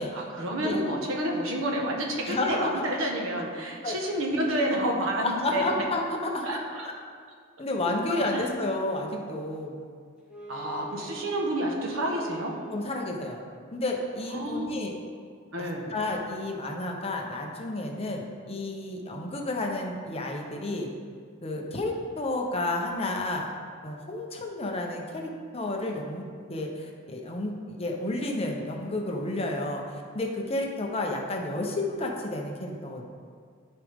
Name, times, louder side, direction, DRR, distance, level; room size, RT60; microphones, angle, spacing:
voice 1, 0.1-5.6 6.4-6.9 8.3-8.5 10.5-12.5 14.3-14.8 15.5-15.9, right 1 dB, 70° right, 0 dB, 1.4 m, -29 dB
voice 2, 2.3-2.8 3.8-4.0 5.2-6.6 7.6-9.9 12.7-13.4 13.7-15.0 15.6-20.9 21.4-23.5 23.8-33.0, left 2 dB, 30° left, 0 dB, 1.0 m, -31 dB
Wind instrument woodwind instrument, 10.2-13.1, right 4 dB, 5° right, 1.9 m, -44 dB
14.0 x 5.0 x 3.7 m, 2.1 s
head